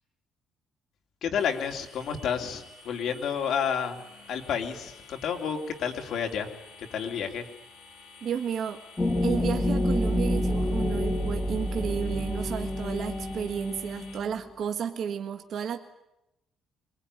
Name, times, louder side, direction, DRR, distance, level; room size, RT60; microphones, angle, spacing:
voice 1, 1.2-4.0 4.3-6.5 6.8-7.4, left 7 dB, 55° left, 4 dB, 3.1 m, -30 dB
sound 1, 1.4-14.2, left 3 dB, 80° left, 4.5 m, -51 dB
voice 2, 8.2-8.8 9.2-15.8, right 8 dB, 45° right, 5 dB, 1.6 m, -32 dB
sound 2, 9.0-14.4, left 1 dB, 10° left, 2.3 m, -28 dB
25.5 x 22.5 x 9.8 m, 0.87 s
cardioid pair, 180°, 0 cm